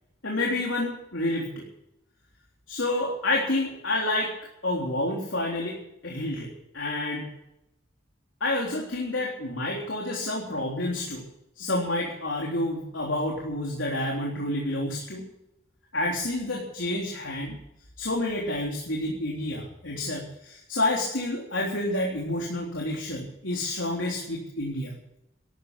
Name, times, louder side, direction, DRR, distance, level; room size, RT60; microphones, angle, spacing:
voice 1, 0.2-1.7 2.7-4.3 4.6-6.5 6.7-7.3 8.4-11.3 11.6-15.3 15.9-17.6 18.0-25.0, left 1 dB, 80° left, -2 dB, 3.7 m, -29 dB
13.5 x 12.5 x 7.2 m, 0.79 s
head